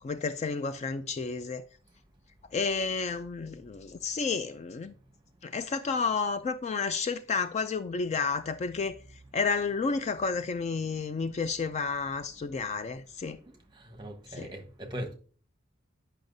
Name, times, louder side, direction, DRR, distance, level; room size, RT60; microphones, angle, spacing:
voice 1, 0.0-1.7 2.5-4.9 5.4-9.0 9.3-13.4 14.4-14.5, left 4 dB, 35° left, 0.3 m, -31 dB
voice 2, 13.5-15.1, equal, 20° right, 1.1 m, -40 dB
8.7 x 5.5 x 2.6 m
head